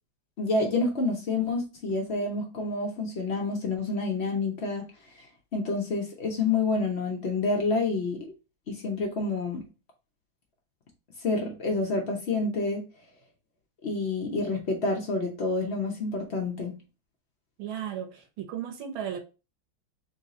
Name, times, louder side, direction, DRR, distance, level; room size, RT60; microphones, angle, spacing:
voice 1, 0.4-4.8 5.5-8.3 8.7-9.7 11.2-12.9 13.8-16.8, left 3 dB, 65° left, 0.6 m, -28 dB
voice 2, 17.6-19.2, right 9 dB, 80° right, 1.7 m, -35 dB
3.9 x 2.7 x 3.7 m
omnidirectional pair, 2.2 m